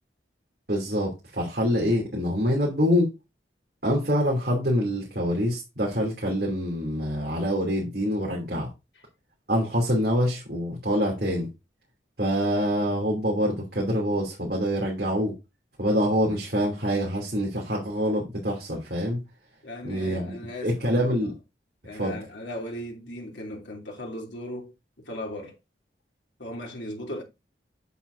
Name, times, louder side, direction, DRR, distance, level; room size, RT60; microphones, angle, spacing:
voice 1, 0.7-3.1 3.8-8.7 9.5-11.5 12.2-15.3 15.8-19.2 19.8-20.4 20.6-21.3 22.0-22.2, equal, 55° right, 2.9 m, -25 dB
voice 2, 19.6-21.3 21.8-24.7 25.0-25.6 26.4-27.2, left 1 dB, 90° left, 2.9 m, -37 dB
8.2 x 7.5 x 2.6 m
head